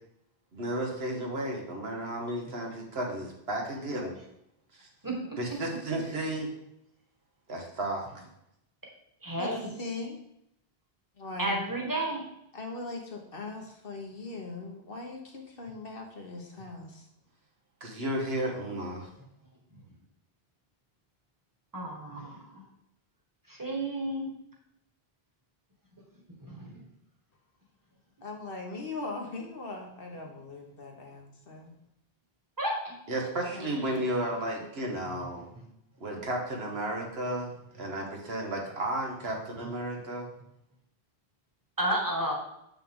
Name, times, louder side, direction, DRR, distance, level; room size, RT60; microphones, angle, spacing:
voice 1, 0.5-4.2 4.7-4.9 5.4-6.5 7.5-8.1 17.8-19.1 33.1-35.4 36.0-37.5 37.8-40.3, right 1 dB, 80° right, 0 dB, 1.6 m, -33 dB
voice 2, 5.0-5.4 9.2-9.7 11.4-12.2 21.7-22.6 23.5-24.3 26.5-26.7 32.6-32.9 41.8-42.3, right 1 dB, 20° right, -1 dB, 1.6 m, -31 dB
voice 3, 9.8-10.2 11.2-11.6 12.5-17.1 28.2-31.7 33.5-33.7, left 3 dB, 65° left, 1 dB, 1.4 m, -40 dB
7.3 x 5.6 x 3.7 m, 0.78 s
omnidirectional pair, 1.0 m